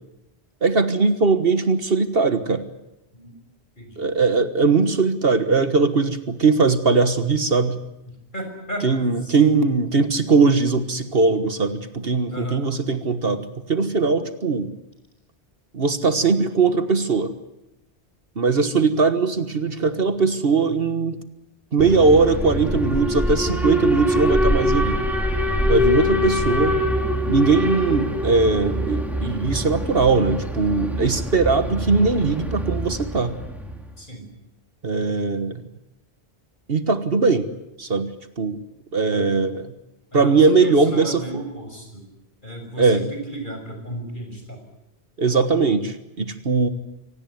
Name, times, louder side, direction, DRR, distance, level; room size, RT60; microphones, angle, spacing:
voice 1, 0.6-2.6 4.0-7.8 8.8-14.7 15.7-17.3 18.4-21.2 21.7-25.0 25.7-26.8 27.3-33.4 34.8-35.6 36.7-37.5 37.8-38.1 38.4-38.6 38.9-39.7 40.1-41.2 42.8-43.0 45.2-46.7, right 4 dB, 60° right, 10 dB, 1.6 m, -20 dB
voice 2, 3.8-4.1 8.1-9.5 12.3-12.6 25.6-25.9 34.0-34.3 40.1-42.1 42.4-44.6, right 1 dB, 45° left, 4 dB, 6.2 m, -34 dB
Alarm, 21.8-33.8, left 1 dB, ahead, 3.1 m, -24 dB
25.0 x 18.0 x 9.4 m, 0.91 s
omnidirectional pair, 1.1 m